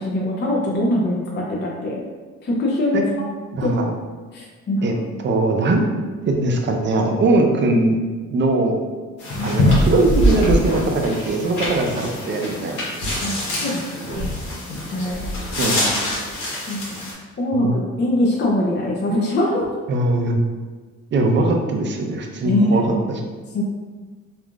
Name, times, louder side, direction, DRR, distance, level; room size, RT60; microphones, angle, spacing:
voice 1, 0.0-2.0 2.4-3.0 3.6-3.8 4.3-4.9 9.3-9.5 13.2-13.8 14.2-14.3 14.9-15.3 16.7-17.0 17.4-19.8 22.4-22.8 23.5-23.7, left 1 dB, 35° left, -2 dB, 0.6 m, -22 dB
voice 2, 3.6-3.9 4.8-5.8 6.2-8.0 8.3-8.8 9.4-12.8 15.6-15.9 17.5-17.8 19.9-20.4 21.1-22.8, right 2 dB, 40° right, 2 dB, 0.5 m, -20 dB
sound 1, 9.2-17.1, left 1 dB, 80° left, 1.1 m, -23 dB
3.5 x 2.5 x 2.3 m, 1.4 s
cardioid pair, 90°, 30 cm